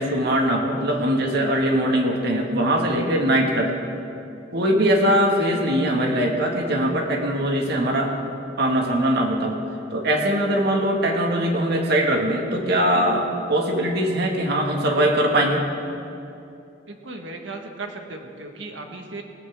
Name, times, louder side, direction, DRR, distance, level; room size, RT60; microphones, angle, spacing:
voice 1, 0.0-3.7 4.5-8.1 8.6-9.6 9.9-15.9, right 1 dB, 60° right, 1 dB, 2.0 m, -21 dB
voice 2, 16.9-19.2, right 3 dB, 85° right, 3 dB, 1.6 m, -36 dB
20.0 x 17.0 x 3.7 m, 2.6 s
head